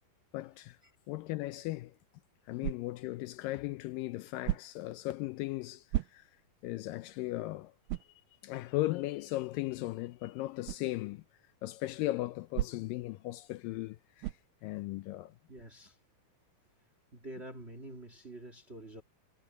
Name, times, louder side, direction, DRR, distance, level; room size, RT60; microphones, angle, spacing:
voice 1, 0.3-0.8 1.1-1.9 2.5-5.9 6.1-6.3 6.6-7.7 8.4-11.2 11.6-14.3 14.6-15.4, left 18 dB, 80° left, 2.1 m, -37 dB
sound 1, 2.6-3.1 4.4-4.9 5.9-6.5 7.0-7.1 7.9-8.2 10.6-10.9 12.5-13.1 14.2-14.6, right 16 dB, 80° right, 2.2 m, -36 dB
voice 2, 15.5-16.0 17.1-19.0, right 1 dB, 25° right, 1.6 m, -47 dB
omnidirectional pair, 4.2 m